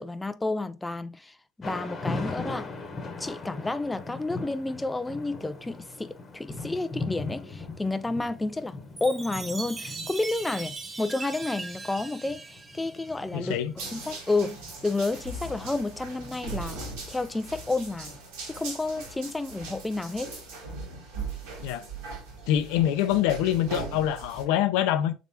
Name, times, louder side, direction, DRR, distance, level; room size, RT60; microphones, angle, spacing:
voice 1, 0.0-2.7 3.2-18.2 18.4-20.3, left 2 dB, 10° left, 0.3 m, -31 dB
Thunder / Rain, 1.6-17.6, left 3 dB, 35° left, 1.1 m, -40 dB
Chime, 9.0-13.6, right 3 dB, 25° right, 0.8 m, -39 dB
voice 2, 13.3-13.7 21.6-21.8 22.5-25.1, left 11 dB, 75° left, 0.5 m, -25 dB
sound 1, 13.8-24.4, right 3 dB, 80° right, 1.9 m, -39 dB
4.9 x 3.6 x 2.8 m
supercardioid pair, 85°, 0 cm